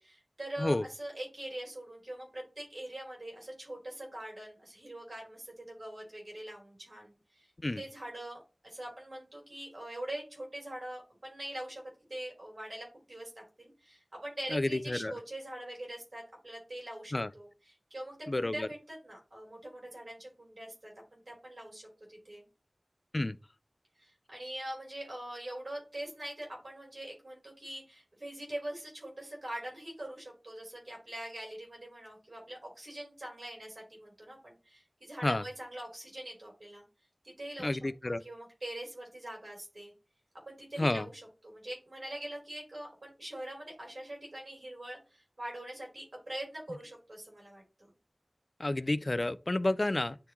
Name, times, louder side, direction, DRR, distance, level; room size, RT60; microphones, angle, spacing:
voice 1, 0.0-7.5 7.8-11.8 12.1-22.4 24.0-36.8 37.2-37.8 38.0-39.9 40.5-47.9, right 1 dB, 90° right, 3.9 m, -43 dB
voice 2, 14.5-15.1 17.1-17.3 18.3-18.7 23.1-23.4 35.2-35.4 37.6-38.2 40.8-41.1 48.6-50.2, left 2 dB, 50° left, 0.3 m, -30 dB
9.8 x 3.5 x 3.0 m
wide cardioid pair, 45°, 0 cm